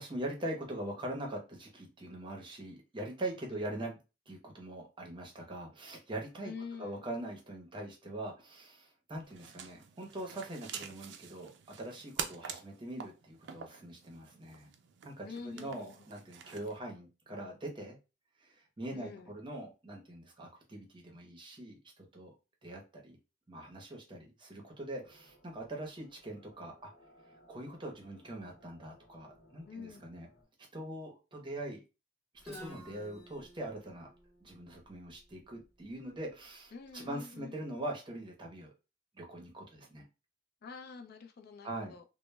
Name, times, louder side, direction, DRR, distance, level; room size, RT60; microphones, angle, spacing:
voice 1, 0.0-4.0 4.3-6.5 6.8-11.5 11.8-14.7 15.0-18.0 18.4-21.8 22.1-22.3 22.6-23.2 23.5-26.9 27.5-30.3 30.7-31.8 32.4-34.1 34.4-38.7 39.1-40.0 41.6-42.0, right 1 dB, 25° right, 0.6 m, -42 dB
voice 2, 6.4-7.0 15.2-16.0 18.9-19.3 29.7-30.0 36.7-37.6 40.6-42.0, left 5 dB, 55° left, 0.3 m, -46 dB
sound 1, 9.2-16.8, right 7 dB, 65° right, 0.4 m, -46 dB
sound 2, 25.0-30.4, equal, 75° left, 0.9 m, -63 dB
Guitar, 32.4-36.2, equal, ahead, 1.0 m, -52 dB
2.1 x 2.0 x 3.2 m
head